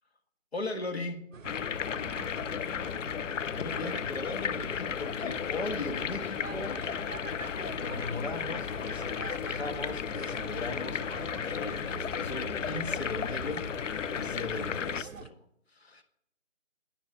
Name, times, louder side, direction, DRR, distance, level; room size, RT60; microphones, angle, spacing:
voice 1, 0.5-1.3 3.5-6.8 7.8-15.4 15.7-16.0, left 2 dB, 55° left, 6 dB, 1.5 m, -38 dB
sound 1, 1.3-15.3, right 5 dB, 85° right, 0.6 m, -45 dB
sound 2, 1.4-15.0, left 7 dB, 70° left, 0.5 m, -34 dB
voice 2, 1.8-3.0 14.5-15.2, equal, 10° right, -8 dB, 1.2 m, -51 dB
11.5 x 9.8 x 3.7 m, 0.74 s
figure-of-eight pair, 165°, 38 cm